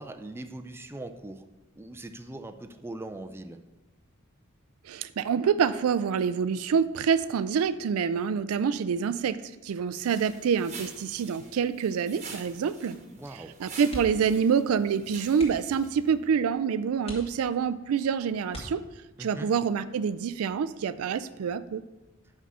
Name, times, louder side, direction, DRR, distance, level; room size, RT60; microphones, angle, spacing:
voice 1, 0.0-1.4 1.8-3.6 13.1-13.5 19.2-19.5, right 2 dB, 10° right, 7 dB, 0.4 m, -40 dB
voice 2, 4.9-13.0 13.6-18.8 19.2-21.8, right 7 dB, 80° right, 14 dB, 0.4 m, -27 dB
sound 1, 10.0-16.2, right 5 dB, 35° right, 1.1 m, -47 dB
sound 2, 13.9-14.4 14.7-14.9 15.3-15.8 16.4-16.5 17.0-17.8 18.5-19.3 20.8-21.1 21.5-21.6, equal, 30° left, 1.8 m, -43 dB
5.8 x 5.6 x 6.2 m, 1.1 s
head